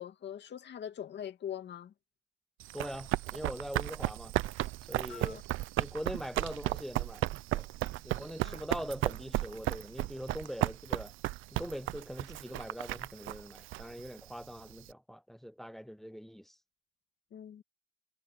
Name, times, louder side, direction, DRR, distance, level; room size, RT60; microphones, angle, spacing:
voice 1, 0.0-1.9 5.1-5.4 8.4-8.6 17.3-17.6, left 9 dB, 60° left, 2.2 m, -42 dB
Run, 2.6-14.9, right 17 dB, 90° right, 0.6 m, -35 dB
voice 2, 2.7-4.3 4.9-5.4 5.8-7.7 8.0-11.1 11.5-16.6, equal, ahead, 0.4 m, -42 dB
cardioid pair, 90°, 20 cm